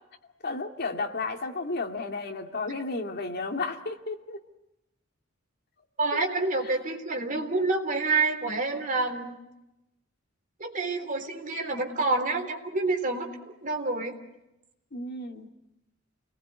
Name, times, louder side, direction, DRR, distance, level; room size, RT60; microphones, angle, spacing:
voice 1, 0.4-4.4 14.9-15.5, left 3 dB, 55° left, 3 dB, 2.4 m, -33 dB
voice 2, 6.0-9.4 10.6-13.3 13.6-14.1, right 3 dB, 40° right, 4 dB, 3.5 m, -28 dB
29.5 x 19.5 x 9.4 m, 0.93 s
head